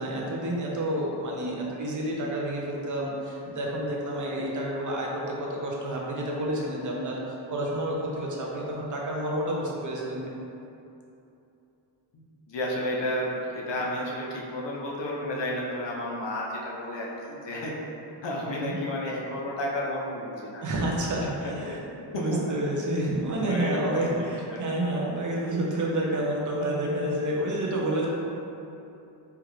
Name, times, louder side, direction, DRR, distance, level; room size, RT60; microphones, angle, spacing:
voice 1, 0.0-7.2 7.5-10.3 18.6-18.8 20.6-21.8 22.1-28.1, right 1 dB, 40° right, -3 dB, 0.6 m, -29 dB
voice 2, 12.1-17.7 18.2-20.6 21.4-21.8 22.1-22.7 23.5-24.8, left 1 dB, 65° left, -3 dB, 0.7 m, -32 dB
4.4 x 2.4 x 3.2 m, 2.8 s
wide cardioid pair, 155°, 47 cm